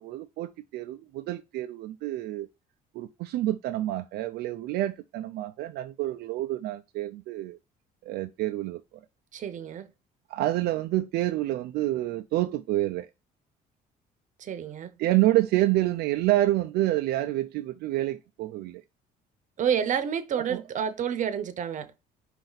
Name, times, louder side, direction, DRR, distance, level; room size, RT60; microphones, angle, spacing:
voice 1, 0.0-2.5 2.9-7.6 8.1-8.8 10.3-13.1 15.0-18.8 20.5-20.6, right 15 dB, 75° right, 0.4 m, -28 dB
voice 2, 9.3-9.9 14.4-14.9 19.6-21.9, right 8 dB, 50° right, 0.8 m, -29 dB
5.2 x 2.6 x 3.9 m
cardioid pair, 110°, 17 cm